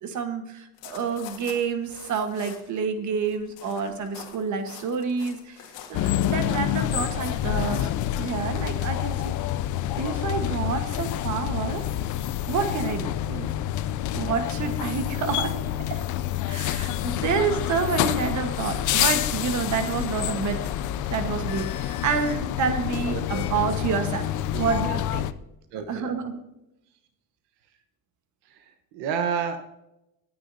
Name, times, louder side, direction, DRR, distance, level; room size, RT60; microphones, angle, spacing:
voice 1, 0.0-5.6 5.9-7.9 8.2-9.2 10.0-11.8 12.5-13.1 14.1-15.6 15.9-16.0 16.5-20.7 21.1-24.3 24.6-25.2 25.9-26.4, right 5 dB, 45° right, 7 dB, 1.3 m, -28 dB
sound 1, 0.8-2.8 3.1-8.1, left 9 dB, 85° left, 2.0 m, -45 dB
sound 2, 5.9-25.3, left 12 dB, 45° left, 0.5 m, -28 dB
voice 2, 13.3-13.6 22.9-23.8 24.5-24.8 25.7-26.1 28.4-29.6, right 6 dB, 80° right, 7 dB, 1.1 m, -32 dB
sound 3, 16.2-22.0, right 2 dB, 15° left, 5.0 m, -49 dB
19.0 x 9.5 x 2.7 m, 0.91 s
cardioid pair, 180°, 42 cm